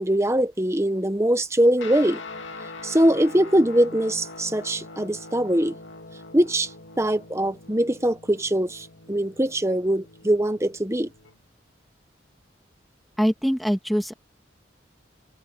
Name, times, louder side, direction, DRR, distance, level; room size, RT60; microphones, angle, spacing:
voice 1, 0.0-2.2 2.8-5.8 6.3-6.7 7.0-11.1, right 1 dB, 15° right, 1.0 m, -22 dB
Guitar, 1.8-11.4, left 3 dB, 90° left, 2.5 m, -42 dB
voice 2, 13.2-14.1, equal, ahead, 1.9 m, -23 dB
open air
head